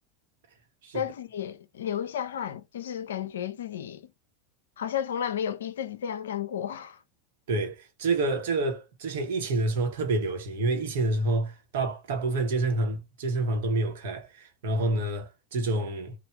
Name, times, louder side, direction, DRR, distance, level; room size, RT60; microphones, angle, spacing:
voice 1, 0.9-4.1 4.8-7.0, left 9 dB, 70° left, 0.5 m, -33 dB
voice 2, 7.5-16.1, right 2 dB, 60° right, 1.2 m, -28 dB
3.3 x 2.5 x 4.2 m
figure-of-eight pair, 85°, 0 cm